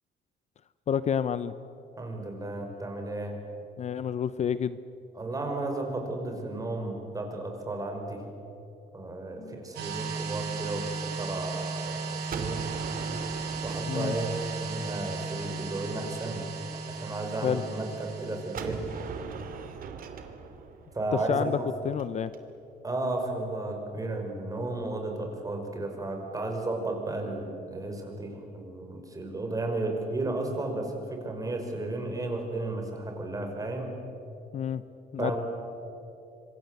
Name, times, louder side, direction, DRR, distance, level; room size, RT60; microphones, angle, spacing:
voice 1, 0.9-1.5 3.8-4.8 9.4-9.6 13.9-14.2 17.4-17.6 21.1-21.6 21.8-22.3 34.5-34.8 35.1-35.3, left 8 dB, 40° left, 14 dB, 0.7 m, -29 dB
voice 2, 2.0-3.4 5.1-8.2 8.9-12.7 13.6-16.4 16.9-18.8 20.9-21.4 22.8-33.9 35.2-35.4, right 2 dB, 20° right, 2 dB, 5.8 m, -33 dB
sound 1, 9.7-19.1, right 4 dB, 75° right, 7.2 m, -36 dB
Gunshot gunfire, 12.3-15.1 18.5-22.4, right 6 dB, 55° right, 2.7 m, -40 dB
26.0 x 24.5 x 8.1 m, 2.9 s
cardioid pair, 110°, 17 cm